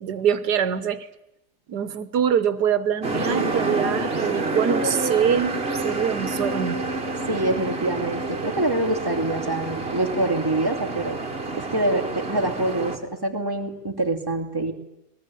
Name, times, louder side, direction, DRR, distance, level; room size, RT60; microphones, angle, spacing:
voice 1, 0.0-1.1 1.7-5.6 5.8-6.8, right 8 dB, 85° right, 14 dB, 1.8 m, -24 dB
sound 1, 3.0-13.0, right 2 dB, 35° right, 2.3 m, -28 dB
voice 2, 7.3-11.2 11.5-14.7, right 2 dB, 15° right, 1 dB, 2.6 m, -25 dB
22.5 x 21.0 x 9.2 m, 0.88 s
omnidirectional pair, 1.7 m